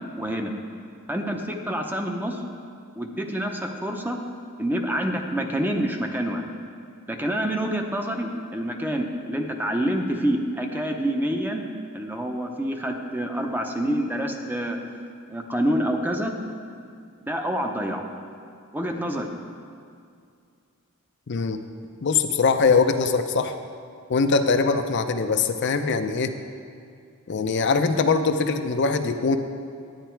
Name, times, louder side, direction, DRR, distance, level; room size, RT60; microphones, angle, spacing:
voice 1, 0.2-0.5 1.1-2.4 2.9-4.2 4.6-6.5 7.1-14.8 15.3-16.3 17.3-18.0 18.7-19.3, right 1 dB, 10° right, 3 dB, 0.7 m, -27 dB
voice 2, 21.3-21.6 22.0-23.5 24.1-26.3 27.3-29.4, left 4 dB, 55° left, 7 dB, 0.5 m, -22 dB
10.5 x 9.5 x 4.5 m, 2.3 s
head